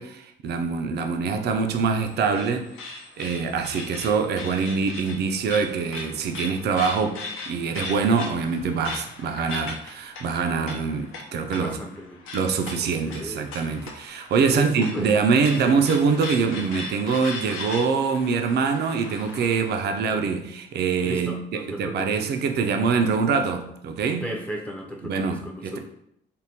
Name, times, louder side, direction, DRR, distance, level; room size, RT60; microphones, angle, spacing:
voice 1, 0.0-2.7 3.2-7.2 7.5-11.8 12.3-21.4 21.7-24.2 25.0-25.8, right 5 dB, 55° right, 5 dB, 0.4 m, -24 dB
sound 1, 1.6-19.7, left 3 dB, 85° left, 0.6 m, -39 dB
voice 2, 11.5-12.2 13.0-13.5 14.4-15.1 15.6-15.8 21.0-22.2 24.2-25.8, equal, 5° left, 0 dB, 0.4 m, -34 dB
3.5 x 2.1 x 2.8 m, 0.75 s
cardioid pair, 90°, 20 cm